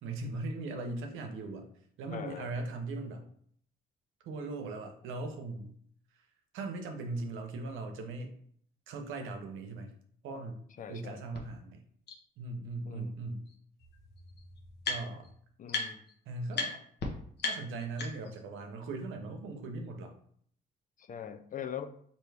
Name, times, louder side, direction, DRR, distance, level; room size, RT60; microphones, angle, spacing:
voice 1, 0.0-1.7 2.0-3.3 4.3-5.7 6.5-8.3 8.9-9.9 10.2-10.6 10.9-11.8 12.4-13.5 14.9-15.2 16.3-16.8 17.4-20.1, right 3 dB, 85° right, 4 dB, 0.7 m, -39 dB
voice 2, 2.1-2.5 10.8-11.2 12.9-13.1 15.6-16.0 21.0-21.9, left 8 dB, 40° left, 10 dB, 0.4 m, -41 dB
sound 1, 11.3-11.4 12.1-12.2 13.5-13.6 13.8-15.3 15.7-16.1 16.5-16.7 17.0-17.1 17.4-18.4, left 3 dB, 60° left, 0.9 m, -36 dB
4.4 x 2.6 x 3.3 m, 0.62 s
cardioid pair, 90°, 20 cm